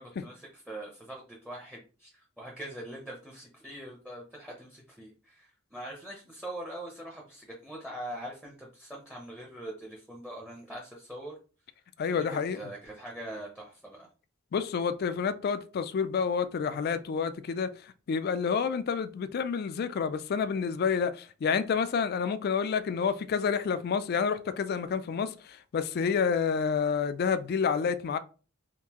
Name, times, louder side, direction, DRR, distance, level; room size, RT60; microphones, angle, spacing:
voice 1, 0.0-11.4 12.1-12.2 12.5-14.1, right 1 dB, 5° right, 0.7 m, -43 dB
voice 2, 12.0-12.6 14.5-28.2, left 6 dB, 50° left, 0.3 m, -29 dB
3.6 x 2.6 x 2.9 m
head